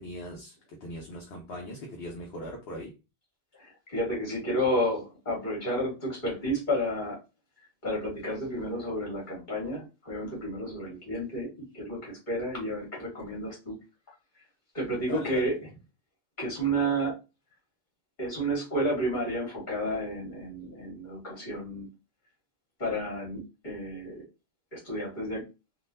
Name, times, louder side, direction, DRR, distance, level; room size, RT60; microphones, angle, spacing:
voice 1, 0.0-3.0 15.1-15.5, equal, 70° left, 0 dB, 1.0 m, -40 dB
voice 2, 3.5-7.2 7.8-13.8 14.7-15.6 16.4-17.2 18.2-21.9 22.8-24.2 24.7-25.4, equal, 45° left, -3 dB, 1.8 m, -31 dB
3.7 x 2.5 x 2.6 m, 0.28 s
omnidirectional pair, 1.1 m